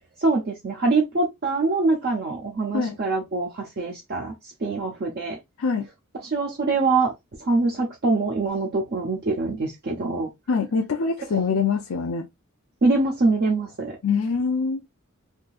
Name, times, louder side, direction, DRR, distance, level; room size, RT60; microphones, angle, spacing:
voice 1, 0.2-4.3 4.6-5.4 6.2-7.1 7.4-10.3 12.8-14.0, right 3 dB, 50° right, 0.7 m, -24 dB
voice 2, 10.5-12.3 14.0-14.8, left 5 dB, 75° left, 0.5 m, -24 dB
3.6 x 2.6 x 2.3 m
head